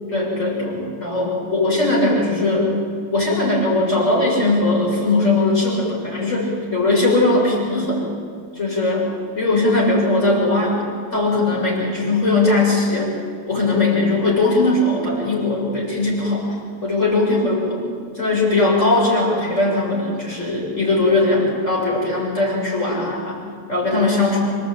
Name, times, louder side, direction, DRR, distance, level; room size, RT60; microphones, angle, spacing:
voice 1, 0.1-2.7 3.1-8.0 8.6-9.1 9.4-10.9 11.1-13.1 13.5-16.4 16.8-17.8 18.1-23.4 23.7-24.6, left 2 dB, 75° left, -4 dB, 7.7 m, -19 dB
29.5 x 18.5 x 9.0 m, 2.2 s
omnidirectional pair, 1.3 m